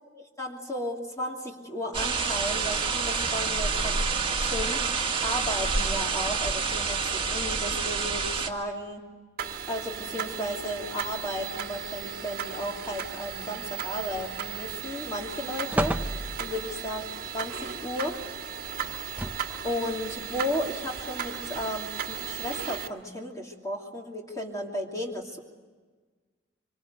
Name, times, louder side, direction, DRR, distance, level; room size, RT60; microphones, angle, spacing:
voice 1, 0.1-4.0 4.4-9.0 9.7-18.2 19.6-25.4, left 1 dB, 20° left, 0 dB, 2.9 m, -34 dB
sound 1, 1.9-8.5, right 5 dB, 30° right, 1.9 m, -28 dB
sound 2, 9.4-22.9, right 7 dB, 55° right, 1.7 m, -36 dB
sound 3, 14.2-14.7 15.1-15.2 15.7-16.7 18.8-19.7 20.4-20.5, right 1 dB, 10° right, 0.9 m, -32 dB
25.5 x 25.5 x 8.1 m, 1.4 s
head